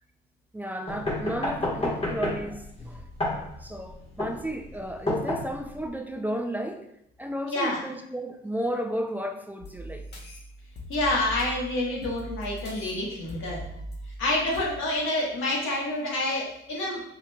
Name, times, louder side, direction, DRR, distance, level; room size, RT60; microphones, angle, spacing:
voice 1, 0.5-6.9 7.2-10.0, right 1 dB, 10° right, 5 dB, 0.4 m, -33 dB
sound 1, 0.9-5.9, left 2 dB, 30° left, 1.4 m, -30 dB
voice 2, 7.5-7.8 10.9-13.6 14.2-17.0, left 1 dB, 90° left, -3 dB, 1.4 m, -28 dB
sound 2, 9.6-14.6, equal, 55° left, 1.1 m, -40 dB
5.7 x 3.8 x 2.3 m, 0.76 s
cardioid pair, 90°, 20 cm